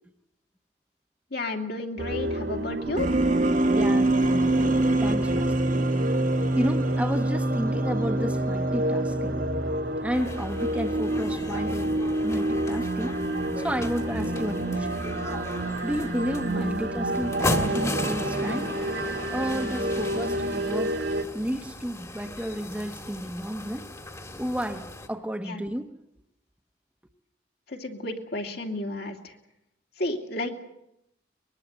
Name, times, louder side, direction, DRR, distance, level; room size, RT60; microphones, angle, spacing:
voice 1, 1.3-3.1 16.6-16.8 25.5-25.7 27.7-29.3 30.0-30.6, left 2 dB, 60° left, 4 dB, 2.7 m, -32 dB
Synth creature or something, 2.0-21.2, right 1 dB, 65° right, 2.5 m, -30 dB
sound 1, 3.0-10.0, right 2 dB, 45° right, 1.6 m, -25 dB
voice 2, 3.6-5.7 6.5-9.4 10.0-13.2 13.6-15.0 15.8-18.7 19.3-20.9 21.3-23.9 24.3-25.9, equal, 5° right, 6 dB, 1.1 m, -32 dB
sound 2, 10.1-25.1, left 1 dB, 15° left, 1.8 m, -36 dB
24.0 x 21.5 x 8.1 m, 0.85 s
head